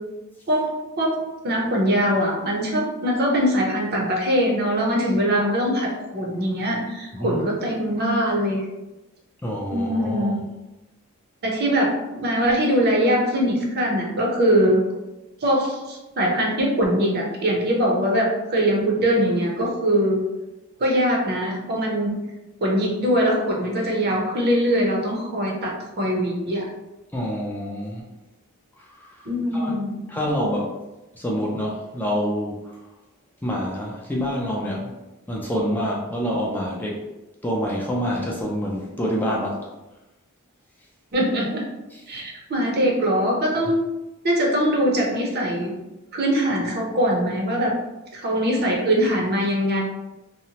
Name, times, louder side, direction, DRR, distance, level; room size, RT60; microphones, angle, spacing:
voice 1, 0.5-1.2 1.4-8.6 9.7-10.4 11.4-14.8 15.4-20.2 20.8-22.2 22.6-26.7 29.3-30.0 41.1-41.6 42.1-43.8 44.2-45.7 46.1-47.7 48.1-49.8, equal, 50° right, -1 dB, 0.6 m, -22 dB
voice 2, 9.4-10.3 27.1-28.0 29.0-29.1 29.5-29.7 30.1-30.7 31.2-32.6 33.4-34.9 35.3-37.0 37.4-39.7 41.9-42.0, equal, 10° left, -4 dB, 0.4 m, -26 dB
2.7 x 2.0 x 2.8 m, 1.0 s
head